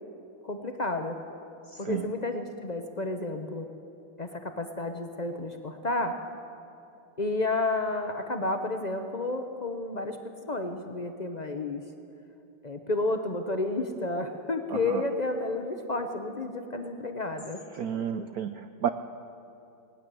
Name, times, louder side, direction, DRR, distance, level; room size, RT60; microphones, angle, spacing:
voice 1, 0.4-1.2 1.8-3.7 4.2-6.2 7.2-10.2 10.5-11.8 12.6-17.6, left 2 dB, 65° left, 5 dB, 0.4 m, -31 dB
voice 2, 17.8-18.9, right 9 dB, 80° right, 10 dB, 0.8 m, -31 dB
19.5 x 18.5 x 7.6 m, 2.8 s
omnidirectional pair, 2.2 m